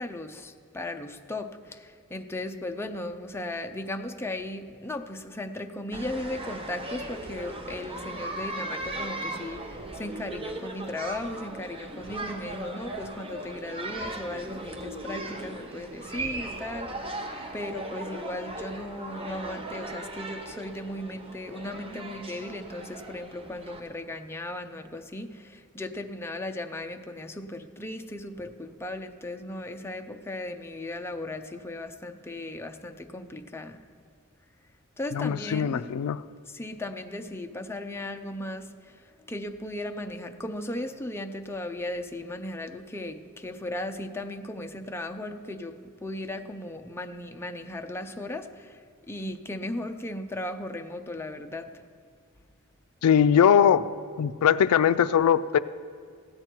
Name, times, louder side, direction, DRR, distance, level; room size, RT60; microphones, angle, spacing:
voice 1, 0.0-17.1 17.5-33.8 35.0-35.9 36.5-38.9 39.3-48.8 49.1-51.7, left 1 dB, 10° left, 5 dB, 0.6 m, -36 dB
sound 1, 5.9-23.8, right 1 dB, 25° right, 1.0 m, -38 dB
voice 2, 35.1-36.2 53.0-53.9 54.2-55.6, left 8 dB, 75° left, 15 dB, 0.3 m, -21 dB
15.5 x 9.5 x 4.5 m, 2.2 s
head